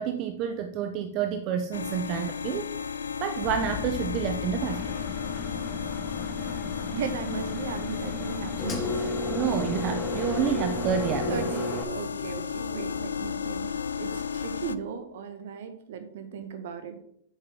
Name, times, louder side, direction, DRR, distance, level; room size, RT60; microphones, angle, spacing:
voice 1, 0.0-2.7 3.2-5.0 9.3-11.6, right 8 dB, 40° right, 9 dB, 0.6 m, -29 dB
sound 1, 1.7-14.8, left 7 dB, 75° left, 0.4 m, -34 dB
sound 2, 3.4-11.4, left 9 dB, 40° left, 1.6 m, -39 dB
Engine, 4.7-11.8, left 2 dB, 20° left, 1.5 m, -34 dB
voice 2, 6.9-9.1 11.3-13.7 14.0-17.0, right 6 dB, 60° right, 8 dB, 1.4 m, -36 dB
7.8 x 7.2 x 3.6 m, 0.67 s
figure-of-eight pair, 105°, 0 cm